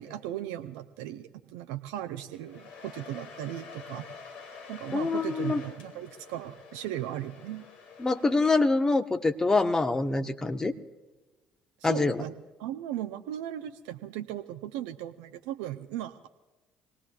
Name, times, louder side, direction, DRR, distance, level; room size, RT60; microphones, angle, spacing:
voice 1, 0.0-4.1 4.7-7.7 11.8-12.3 12.6-16.3, right 12 dB, 75° right, 8 dB, 0.6 m, -37 dB
Domestic sounds home sounds, 2.2-8.9, left 5 dB, 60° left, 2.6 m, -47 dB
voice 2, 4.9-5.6 8.0-10.7 11.8-12.2, left 3 dB, 20° left, 7 dB, 1.2 m, -25 dB
26.0 x 19.0 x 2.4 m, 1.2 s
hypercardioid pair, 55°, 3 cm